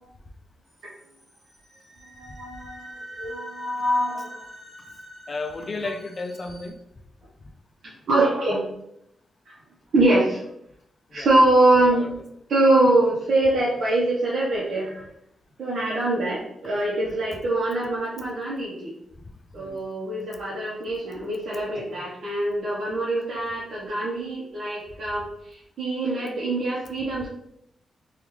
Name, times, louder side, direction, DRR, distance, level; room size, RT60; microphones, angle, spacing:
sound 1, 0.7-6.7, right 1 dB, 35° right, 0.8 m, -45 dB
voice 1, 2.2-2.9 3.2-4.5 8.1-8.6 9.9-10.4 11.1-12.1 12.5-15.1 15.6-18.9 19.5-27.3, right 2 dB, 65° right, -7 dB, 0.7 m, -23 dB
voice 2, 5.3-6.8 11.1-11.3 11.8-12.1 15.8-15.9 19.6-19.8, left 3 dB, 35° left, 6 dB, 0.3 m, -33 dB
3.4 x 2.3 x 3.0 m, 0.77 s
wide cardioid pair, 155°, 0 cm